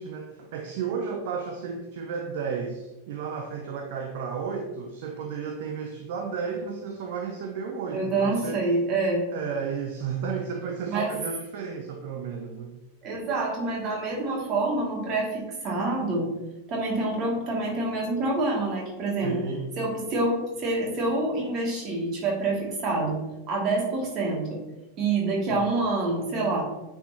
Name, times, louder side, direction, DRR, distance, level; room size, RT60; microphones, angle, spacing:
voice 1, 0.0-8.6 9.3-12.8 19.2-19.7 25.5-25.6, right 6 dB, 50° right, 4 dB, 0.6 m, -33 dB
voice 2, 7.9-9.3 10.9-11.1 13.0-16.3 16.7-19.4 19.8-23.2 23.5-24.6 25.0-26.6, right 2 dB, 35° right, -2 dB, 2.3 m, -27 dB
9.1 x 4.5 x 2.9 m, 1.0 s
figure-of-eight pair, 90°, 0 cm